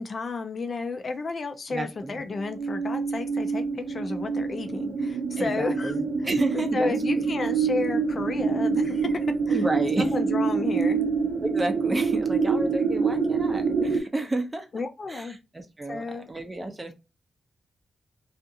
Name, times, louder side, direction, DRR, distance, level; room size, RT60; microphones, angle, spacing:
voice 1, 0.0-5.9 6.5-9.7 10.0-11.1 14.7-15.4 15.9-16.3, left 3 dB, 40° left, 0.4 m, -32 dB
voice 2, 1.7-2.2 5.4-7.2 9.5-10.1 11.4-14.7 15.1-16.9, right 2 dB, 20° right, 0.6 m, -31 dB
sound 1, 2.4-14.0, right 5 dB, 75° right, 0.5 m, -26 dB
2.5 x 2.4 x 2.7 m
wide cardioid pair, 120°, 0 cm